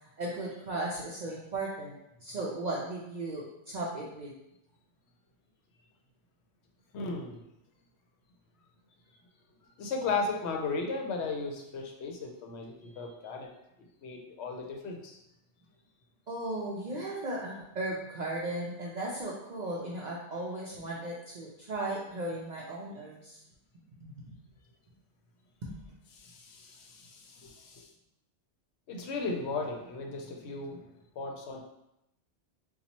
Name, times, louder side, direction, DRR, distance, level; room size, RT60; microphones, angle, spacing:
voice 1, 0.2-4.4 16.3-23.4 24.0-24.1 25.6-25.8, right 2 dB, 60° right, -4 dB, 0.5 m, -36 dB
voice 2, 6.9-7.4 9.8-13.5 14.0-15.2 26.1-27.9 28.9-31.6, left 4 dB, 70° left, 1 dB, 0.8 m, -36 dB
4.0 x 2.3 x 2.8 m, 0.85 s
omnidirectional pair, 1.2 m